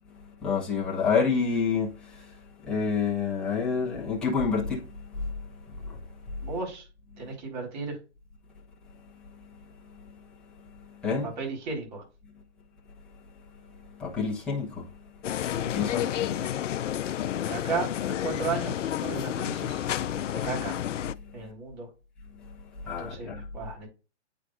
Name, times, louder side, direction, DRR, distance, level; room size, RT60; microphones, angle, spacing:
voice 1, 0.1-6.5 7.1-7.3 8.9-11.3 13.1-15.4 15.7-16.3 17.2-17.4 20.1-20.2 21.2-21.5 22.3-23.4, left 5 dB, ahead, 0.7 m, -31 dB
voice 2, 6.4-6.9 7.2-8.0 11.1-12.0 15.4-15.7 16.3-16.5 17.3-17.9 18.2-19.8 20.3-20.8 21.3-21.9 22.8-23.9, right 4 dB, 40° right, 4.1 m, -35 dB
sound 1, 15.2-21.1, left 11 dB, 85° left, 0.5 m, -30 dB
9.0 x 5.0 x 2.5 m
hypercardioid pair, 150°, 36 cm